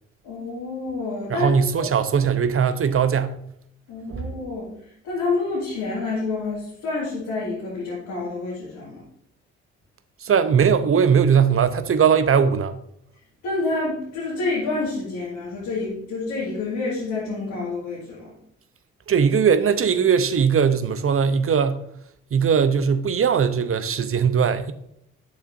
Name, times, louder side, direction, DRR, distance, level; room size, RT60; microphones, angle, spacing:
voice 1, 0.2-1.5 1.8-1.9 3.9-4.7 5.0-9.0 13.4-18.3, left 3 dB, 85° left, 2.1 m, -28 dB
voice 2, 1.3-3.4 4.1-4.3 10.2-12.8 19.1-21.8 22.3-24.7, right 7 dB, 45° right, 0.8 m, -19 dB
8.6 x 6.6 x 2.6 m
hypercardioid pair, 40°, 31 cm